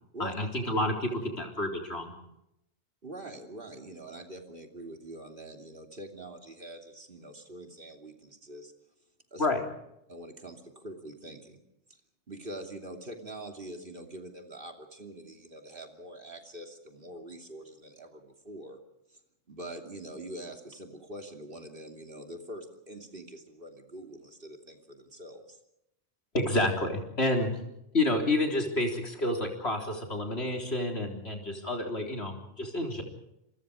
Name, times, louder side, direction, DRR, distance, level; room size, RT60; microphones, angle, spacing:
voice 1, 0.2-1.1 1.4-2.1 9.4-9.6 26.3-27.5 27.9-33.0, left 2 dB, 65° left, 2 dB, 4.1 m, -29 dB
voice 2, 3.0-8.7 9.3-9.5 10.1-11.6 12.3-18.8 19.1-19.2 19.5-25.6, right 1 dB, 50° right, 3 dB, 3.1 m, -44 dB
27.5 x 23.5 x 5.0 m, 0.85 s
omnidirectional pair, 1.2 m